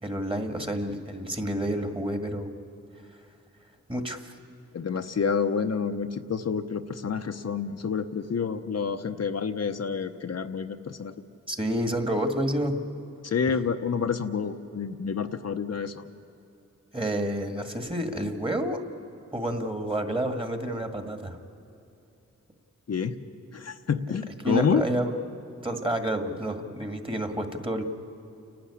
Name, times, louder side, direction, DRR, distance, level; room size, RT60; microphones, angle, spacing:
voice 1, 0.0-2.5 3.9-4.3 11.5-12.8 16.9-18.8 19.3-21.4 24.4-25.1 25.6-27.9, right 1 dB, 15° right, 6 dB, 1.9 m, -29 dB
voice 2, 4.7-11.1 13.2-16.1 22.9-23.1 23.5-24.8, left 6 dB, 55° left, 6 dB, 0.8 m, -28 dB
29.5 x 12.0 x 9.8 m, 2.8 s
wide cardioid pair, 75°, 30 cm